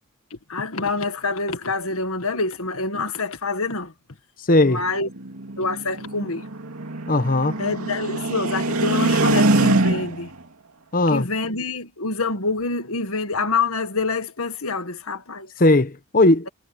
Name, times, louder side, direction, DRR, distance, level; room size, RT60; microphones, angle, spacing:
voice 1, 0.3-3.9 4.6-5.1 5.6-6.4 7.6-10.3 11.1-15.5, left 3 dB, 70° left, 1.9 m, -26 dB
voice 2, 4.5-4.8 7.1-7.6 10.9-11.3 15.6-16.5, left 2 dB, 40° left, 1.0 m, -17 dB
sound 1, 4.8-10.3, right 2 dB, 80° right, 2.8 m, -23 dB
head